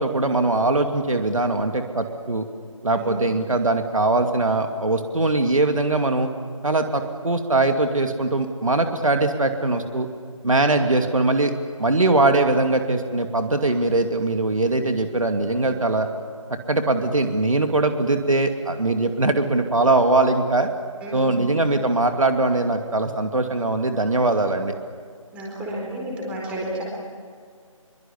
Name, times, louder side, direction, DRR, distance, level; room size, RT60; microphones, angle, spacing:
voice 1, 0.0-2.5 2.8-6.3 6.6-10.1 10.4-11.5 11.8-16.1 16.5-20.7 21.1-24.7, right 2 dB, 70° right, 5 dB, 2.5 m, -21 dB
voice 2, 21.0-21.5 25.3-26.8, right 1 dB, 5° right, -3 dB, 4.3 m, -31 dB
24.5 x 23.5 x 8.5 m, 2.1 s
figure-of-eight pair, 160°, 18 cm